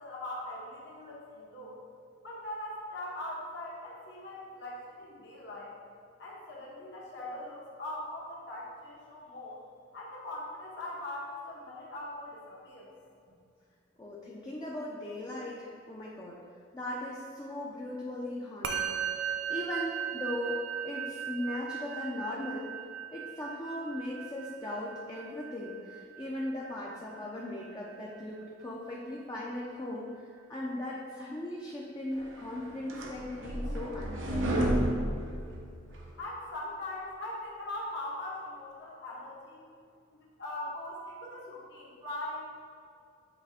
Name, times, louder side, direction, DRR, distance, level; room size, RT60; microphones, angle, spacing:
voice 1, 0.0-1.8 2.2-5.7 6.2-9.6 9.9-12.9 36.2-39.6 40.1-42.5, left 1 dB, 60° left, -5 dB, 1.4 m, -41 dB
voice 2, 14.0-16.4 16.7-22.7 23.1-34.5, left 1 dB, 20° left, -4 dB, 0.5 m, -38 dB
Musical instrument, 18.6-28.2, right 8 dB, 65° right, 0.5 m, -38 dB
sound 1, 32.4-36.1, right 1 dB, 90° right, 0.8 m, -31 dB
8.1 x 3.3 x 3.5 m, 2.4 s
head